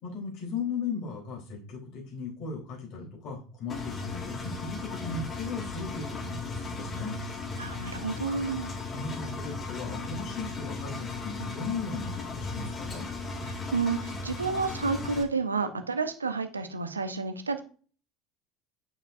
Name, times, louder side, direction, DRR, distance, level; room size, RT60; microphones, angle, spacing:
voice 1, 0.0-7.2 8.9-13.0, left 4 dB, 50° left, -1 dB, 3.7 m, -37 dB
Engine, 3.7-15.2, left 3 dB, 25° left, 1.9 m, -36 dB
voice 2, 7.6-8.7 13.5-17.6, right 4 dB, 80° right, 8 dB, 0.9 m, -30 dB
9.0 x 6.9 x 2.6 m, 0.39 s
figure-of-eight pair, 70°, 0 cm